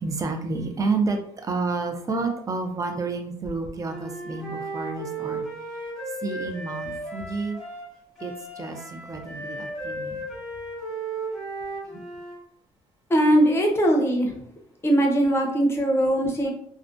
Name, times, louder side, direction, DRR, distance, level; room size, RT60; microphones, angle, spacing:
voice 1, 0.0-5.4 6.2-7.6 8.2-10.3 11.9-12.0, right 3 dB, 25° right, 5 dB, 0.4 m, -30 dB
Wind instrument woodwind instrument, 3.9-12.4, right 2 dB, ahead, 1.2 m, -35 dB
voice 2, 13.1-14.3 14.8-16.5, right 1 dB, 20° left, 1 dB, 0.6 m, -20 dB
2.4 x 2.2 x 2.4 m, 0.67 s
cardioid pair, 100°, 12 cm